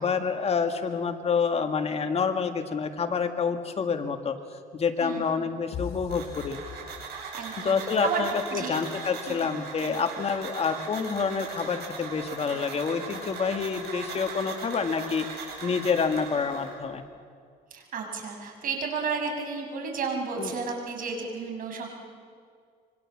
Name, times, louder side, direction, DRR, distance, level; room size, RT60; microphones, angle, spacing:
voice 1, 0.0-4.4 4.7-6.6 7.6-15.3 15.6-17.0 20.4-20.5, left 5 dB, 40° left, 6 dB, 1.9 m, -28 dB
voice 2, 5.0-5.4 7.3-8.8 9.3-9.4 17.7-21.9, right 4 dB, 55° right, 3 dB, 6.1 m, -32 dB
sound 1, 5.7-7.5, left 6 dB, 65° left, 2.7 m, -39 dB
sound 2, 6.1-16.7, right 4 dB, 75° right, 7.9 m, -39 dB
26.5 x 24.5 x 7.4 m, 2.2 s
cardioid pair, 110°, 17 cm